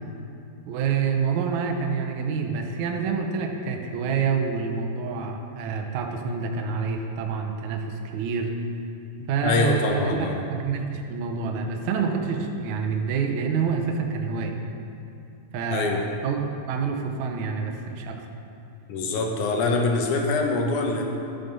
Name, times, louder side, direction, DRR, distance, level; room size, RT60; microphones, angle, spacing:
voice 1, 0.7-8.7 9.3-14.6 15.5-18.2, right 5 dB, 70° right, 3 dB, 1.9 m, -27 dB
voice 2, 9.4-10.4 15.7-16.0 18.9-21.0, left 3 dB, 70° left, 2 dB, 2.3 m, -24 dB
12.5 x 7.4 x 5.4 m, 2.6 s
omnidirectional pair, 4.1 m